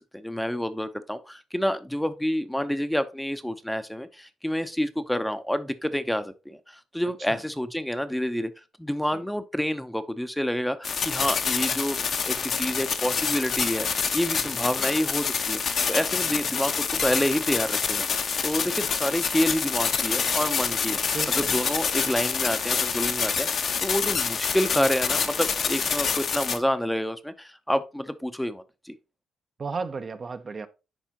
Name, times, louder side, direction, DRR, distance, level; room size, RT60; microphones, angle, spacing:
voice 1, 0.0-8.5 8.8-13.9 14.1-28.9, equal, 5° left, 0.6 m, -28 dB
sound 1, 10.8-26.6, left 6 dB, 55° left, 0.8 m, -27 dB
voice 2, 14.4-14.9 16.3-16.6 21.1-21.6 29.6-30.7, right 4 dB, 40° right, 0.6 m, -36 dB
10.0 x 3.5 x 2.8 m
cardioid pair, 90°, 0 cm